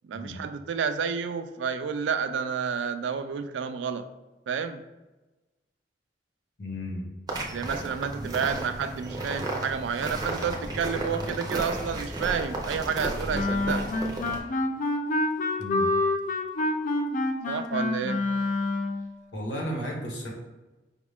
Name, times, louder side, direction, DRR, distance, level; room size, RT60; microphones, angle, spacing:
voice 1, 0.0-4.1 4.5-4.8 7.5-13.9 17.5-18.2, right 6 dB, 85° right, 10 dB, 0.3 m, -30 dB
voice 2, 6.6-7.1 8.2-8.3 15.6-15.9 19.3-20.3, equal, 75° left, -2 dB, 1.2 m, -33 dB
sound 1, 7.3-14.4, right 2 dB, 20° right, 0.6 m, -33 dB
Wind instrument woodwind instrument, 13.3-19.1, left 2 dB, 45° left, 0.4 m, -27 dB
5.2 x 2.4 x 3.4 m, 1.1 s
head